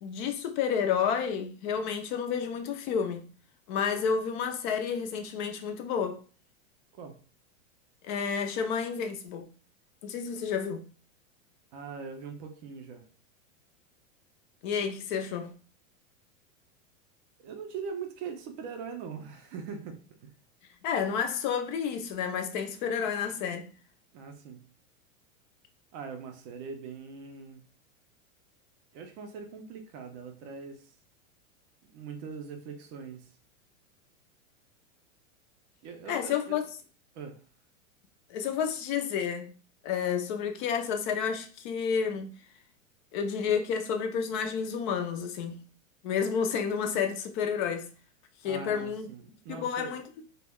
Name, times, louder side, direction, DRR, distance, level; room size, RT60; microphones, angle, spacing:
voice 1, 0.0-3.2 3.7-6.2 8.0-9.5 10.0-10.9 14.6-15.5 20.8-23.7 36.1-36.6 38.3-39.5 39.8-42.3 43.1-45.6 46.0-47.9 48.4-49.0 49.5-50.2, left 7 dB, 40° left, 0.4 m, -30 dB
voice 2, 11.7-13.1 17.4-20.3 24.1-24.7 25.9-27.7 28.9-30.9 31.9-33.4 35.8-36.6 37.1-37.4 48.4-50.0, right 5 dB, 35° right, 0.4 m, -41 dB
2.3 x 2.1 x 3.4 m
supercardioid pair, 135°, 40 cm